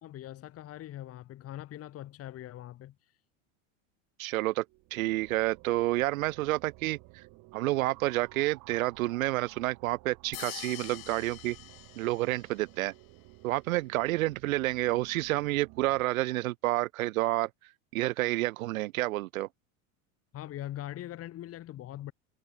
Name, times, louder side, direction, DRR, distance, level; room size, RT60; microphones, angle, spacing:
voice 1, 0.0-3.1 20.3-22.1, left 13 dB, 35° left, 3.4 m, -42 dB
voice 2, 4.2-4.6 4.9-7.0 7.5-11.6 12.0-12.9 13.4-17.5 17.9-19.5, right 18 dB, 80° right, 2.5 m, -29 dB
sound 1, 4.6-16.0, right 24 dB, 50° right, 6.5 m, -54 dB
sound 2, 10.3-12.6, left 18 dB, 75° left, 5.7 m, -44 dB
supercardioid pair, 135°, 41 cm